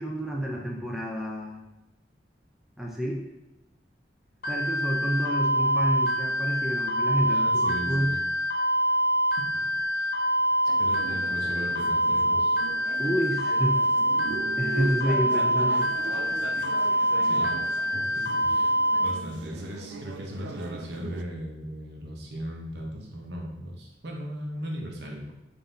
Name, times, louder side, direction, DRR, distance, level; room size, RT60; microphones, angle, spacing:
voice 1, 0.0-1.6 2.8-3.2 4.5-8.1 13.0-13.8 14.6-15.9, right 1 dB, ahead, -2 dB, 0.4 m, -29 dB
sound 1, 4.4-19.1, equal, 55° left, 0.9 m, -25 dB
voice 2, 7.2-8.2 9.9-10.1 10.8-12.6 17.2-17.6 17.9-25.3, equal, 70° right, 0 dB, 0.8 m, -38 dB
sound 2, 10.7-21.2, right 3 dB, 90° right, 0.3 m, -40 dB
3.8 x 2.6 x 3.7 m, 1.0 s
head